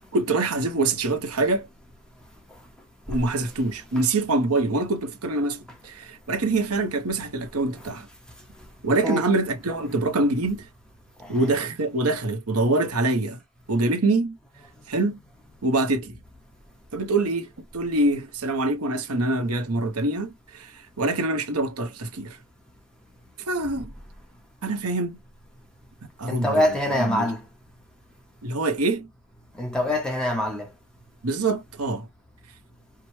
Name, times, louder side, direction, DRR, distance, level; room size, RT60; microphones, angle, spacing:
voice 1, 0.1-1.7 3.1-8.1 8.8-10.6 11.3-13.4 13.7-14.4 14.9-15.2 15.6-16.1 16.9-22.4 23.5-23.9 24.6-25.2 26.2-26.6 27.0-27.3 28.4-29.1 31.2-32.1, right 2 dB, 85° right, 1.0 m, -25 dB
voice 2, 26.3-27.4 29.6-30.7, left 1 dB, 5° left, 1.0 m, -25 dB
4.8 x 2.2 x 3.1 m
head